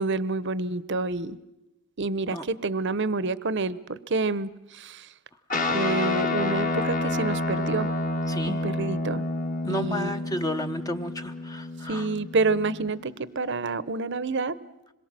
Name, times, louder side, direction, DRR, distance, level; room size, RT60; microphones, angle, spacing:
voice 1, 0.0-1.4 2.0-5.1 5.7-7.9 8.5-9.2 9.7-10.2 11.9-14.6, right 3 dB, 55° right, 17 dB, 0.8 m, -28 dB
Guitar, 5.5-13.1, left 2 dB, 35° left, 1.6 m, -29 dB
voice 2, 8.3-8.6 9.6-12.1, left 1 dB, 15° left, 7 dB, 0.8 m, -32 dB
26.0 x 22.5 x 7.5 m, 0.93 s
head